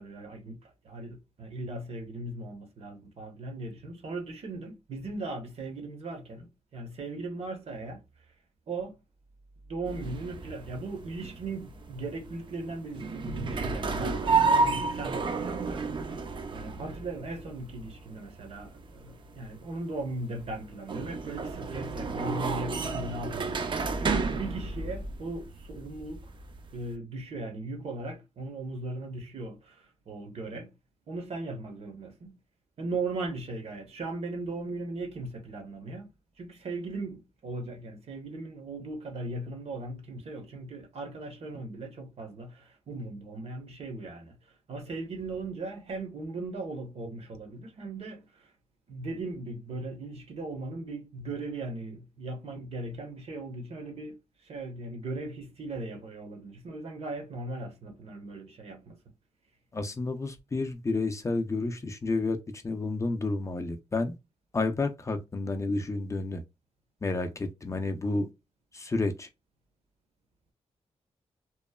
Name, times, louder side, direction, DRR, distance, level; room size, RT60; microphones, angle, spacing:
voice 1, 0.0-8.0 8.7-9.0 9.7-16.1 16.5-23.6 24.0-26.3 26.7-30.7 31.1-32.4 32.8-36.1 36.4-48.5 48.9-59.0, right 2 dB, 65° right, 0.8 m, -38 dB
sound 1, 9.9-26.9, right 4 dB, 45° right, 0.4 m, -32 dB
voice 2, 59.7-62.4 62.6-64.1 64.5-66.4 67.0-68.3 68.7-69.3, left 3 dB, 25° left, 0.4 m, -30 dB
2.9 x 2.0 x 2.2 m
wide cardioid pair, 100°, 12 cm